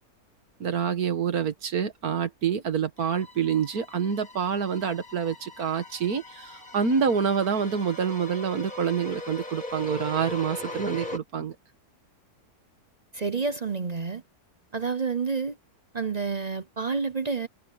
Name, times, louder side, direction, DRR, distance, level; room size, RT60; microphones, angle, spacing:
voice 1, 0.6-11.6, right 7 dB, 70° right, 2.1 m, -27 dB
sound 1, 3.0-11.2, left 2 dB, 30° left, 7.2 m, -40 dB
voice 2, 13.1-14.2 14.7-15.6 15.9-17.5, right 5 dB, 45° right, 0.5 m, -29 dB
omnidirectional pair, 1.6 m